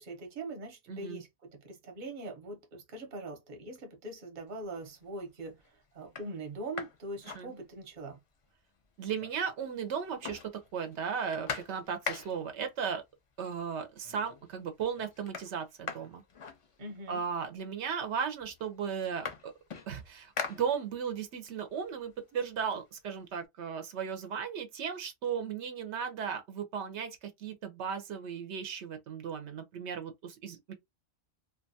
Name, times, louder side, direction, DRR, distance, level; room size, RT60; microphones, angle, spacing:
voice 1, 0.0-5.6 5.9-8.2 16.8-17.2, right 2 dB, 50° right, 0.9 m, -42 dB
voice 2, 0.9-1.2 7.3-7.5 9.0-13.0 13.4-16.2 17.1-19.5 19.9-30.7, right 7 dB, 85° right, 0.9 m, -36 dB
sound 1, 4.6-5.1 5.6-5.7 6.0-8.1 8.4-8.5 8.8-9.6 9.9-12.6 13.6-13.7 14.0-14.5 14.8-17.2 18.0-18.1 18.4-21.2 21.6-23.4, left 5 dB, 50° left, 0.4 m, -43 dB
2.5 x 2.2 x 2.6 m
omnidirectional pair, 1.1 m